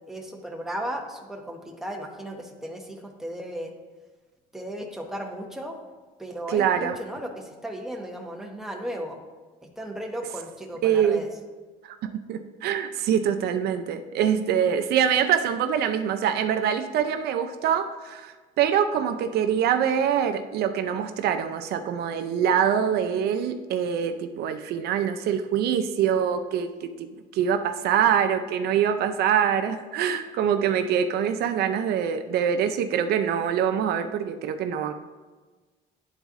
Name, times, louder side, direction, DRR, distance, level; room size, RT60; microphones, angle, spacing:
voice 1, 0.1-3.7 4.5-5.8 6.2-9.2 9.8-11.3, equal, ahead, 1 dB, 1.0 m, -35 dB
voice 2, 6.5-7.0 10.8-11.2 11.8-27.1 27.3-34.9, right 8 dB, 70° right, 8 dB, 0.5 m, -24 dB
10.0 x 4.0 x 3.6 m, 1.3 s
cardioid pair, 110°, 17 cm